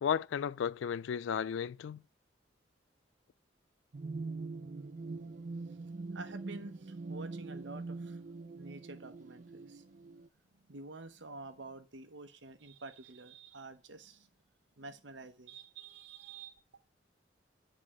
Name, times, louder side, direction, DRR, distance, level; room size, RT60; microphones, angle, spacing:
voice 1, 0.0-2.0, left 8 dB, 85° left, 0.3 m, -34 dB
sound 1, 3.9-10.3, right 3 dB, 45° right, 0.5 m, -43 dB
voice 2, 6.1-8.2 8.6-14.3 14.8-16.6, right 3 dB, 70° right, 1.0 m, -49 dB
9.6 x 3.7 x 6.1 m
head